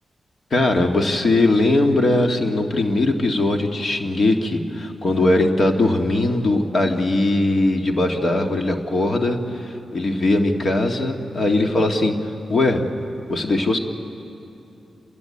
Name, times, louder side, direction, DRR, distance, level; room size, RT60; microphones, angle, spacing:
voice 1, 0.5-12.2 12.5-12.8 13.3-13.8, left 2 dB, 55° left, 3 dB, 2.1 m, -20 dB
29.0 x 13.5 x 9.8 m, 2.8 s
supercardioid pair, 45°, 0 cm